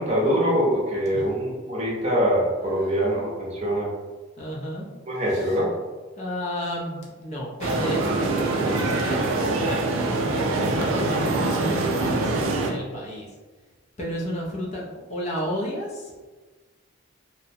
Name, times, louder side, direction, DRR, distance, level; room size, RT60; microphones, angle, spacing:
voice 1, 0.0-3.9 5.1-5.7, equal, 30° right, -5 dB, 0.6 m, -24 dB
voice 2, 4.4-4.9 5.3-5.6 6.2-9.9 10.3-13.3 14.0-16.1, equal, 30° left, -4 dB, 0.4 m, -32 dB
sound 1, 7.6-12.7, right 2 dB, 75° right, 0.4 m, -24 dB
2.5 x 2.0 x 2.6 m, 1.3 s
head